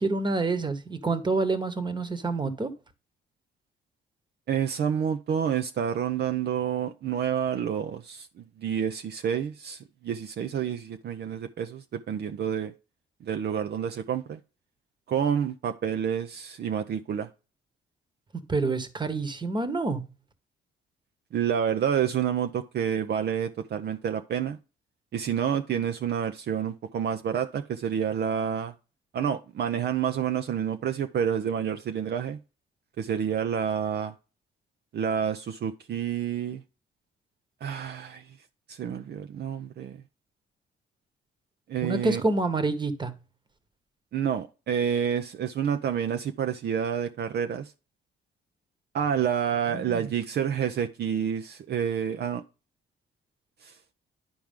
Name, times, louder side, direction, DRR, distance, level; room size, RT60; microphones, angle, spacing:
voice 1, 0.0-2.7 18.5-20.0 41.8-43.1 49.7-50.1, right 3 dB, 25° right, 1.2 m, -27 dB
voice 2, 4.5-12.7 13.2-14.4 15.1-17.3 21.3-24.6 25.1-28.7 29.1-32.4 33.0-34.1 34.9-36.6 37.6-38.3 38.7-40.0 41.7-42.2 44.1-47.7 48.9-52.4 53.6-53.7, right 8 dB, 55° right, 0.6 m, -29 dB
10.5 x 4.6 x 3.7 m
cardioid pair, 90°, 20 cm